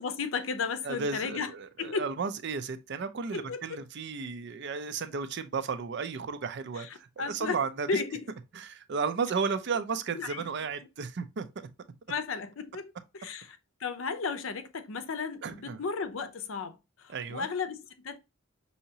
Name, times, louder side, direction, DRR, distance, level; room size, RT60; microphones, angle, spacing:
voice 1, 0.0-1.5 1.8-2.1 3.3-3.8 6.8-7.6 7.9-8.3 9.0-9.1 10.1-10.5 12.1-18.2, left 5 dB, 75° left, 0.6 m, -34 dB
voice 2, 0.8-8.0 8.5-11.5 15.4-15.8 17.1-17.5, right 5 dB, 60° right, 0.5 m, -34 dB
5.6 x 2.8 x 2.8 m
head